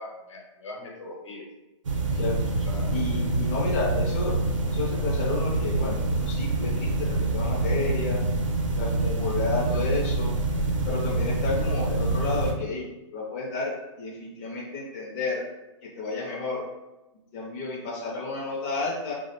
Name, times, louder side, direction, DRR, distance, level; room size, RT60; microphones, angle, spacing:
voice 1, 0.0-1.4 2.6-2.9 3.4-3.7, left 2 dB, 70° left, 0 dB, 0.8 m, -41 dB
sound 1, 1.8-12.5, right 2 dB, 90° right, 0.6 m, -26 dB
voice 2, 2.9-4.3 4.7-8.2 8.8-10.3 10.9-12.9 13.1-15.5 15.8-16.7 17.3-19.1, left 3 dB, 30° left, -4 dB, 0.4 m, -31 dB
2.6 x 2.0 x 2.8 m, 1.0 s
hypercardioid pair, 150°, 16 cm